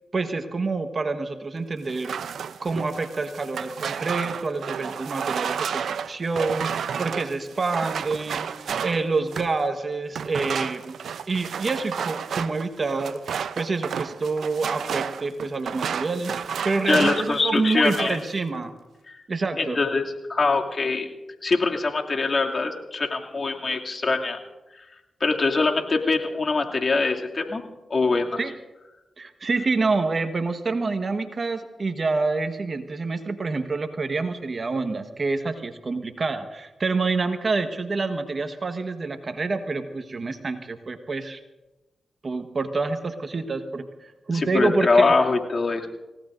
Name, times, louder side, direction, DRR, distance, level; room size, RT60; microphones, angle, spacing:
voice 1, 0.1-2.1 2.5-10.9 11.3-18.7 19.3-19.8 28.4-28.5 29.2-41.4 42.2-45.1, right 3 dB, 50° right, 7 dB, 1.3 m, -27 dB
sound 1, 1.9-9.6 10.1-17.4 17.7-18.2, right 7 dB, 80° right, 0.5 m, -31 dB
voice 2, 16.9-18.2 19.6-20.0 20.3-21.1 21.4-24.4 25.2-27.6 27.9-28.4 44.3-45.9, left 3 dB, 50° left, 0 dB, 2.5 m, -23 dB
29.0 x 17.0 x 2.6 m, 1.1 s
supercardioid pair, 45°, 0 cm